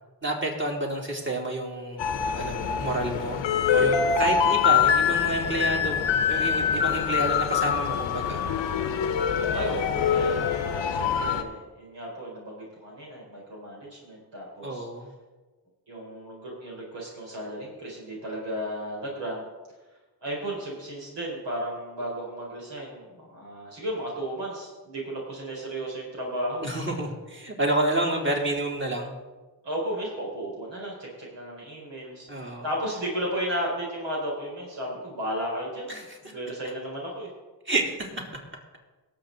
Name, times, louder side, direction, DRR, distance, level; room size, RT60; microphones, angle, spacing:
voice 1, 0.2-8.4 14.6-15.1 26.6-29.2 32.3-32.6 35.9-36.2 37.6-38.2, right 1 dB, 25° right, -1 dB, 3.2 m, -29 dB
sound 1, 2.0-11.4, left 7 dB, 80° left, 0.9 m, -24 dB
voice 2, 9.5-14.9 15.9-19.4 20.2-26.7 29.6-37.3, equal, 75° right, -3 dB, 4.3 m, -34 dB
18.0 x 7.2 x 3.9 m, 1.2 s
supercardioid pair, 50°, 44 cm